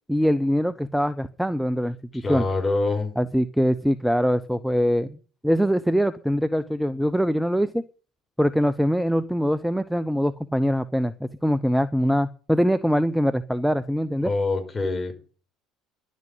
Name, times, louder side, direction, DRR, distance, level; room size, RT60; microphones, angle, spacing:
voice 1, 0.1-2.4 3.2-5.2 5.4-7.8 8.4-14.3, equal, ahead, 13 dB, 0.8 m, -23 dB
voice 2, 2.1-3.1 14.2-15.1, left 3 dB, 20° left, 3 dB, 5.4 m, -25 dB
11.0 x 9.4 x 9.6 m, 0.39 s
figure-of-eight pair, 60°, 0 cm